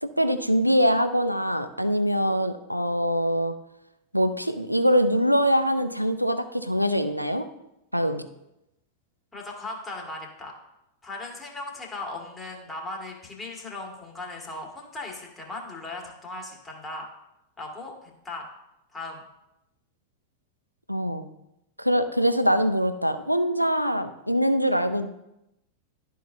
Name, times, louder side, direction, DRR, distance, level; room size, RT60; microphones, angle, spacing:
voice 1, 0.0-3.5 4.1-7.5 7.9-8.2 20.9-21.3 21.8-25.1, equal, 90° right, 10 dB, 0.5 m, -23 dB
voice 2, 9.3-10.5 11.0-17.1 17.6-18.4 18.9-19.2, left 2 dB, 15° left, -1 dB, 1.9 m, -37 dB
12.0 x 4.6 x 2.7 m, 0.87 s
figure-of-eight pair, 90°, 0 cm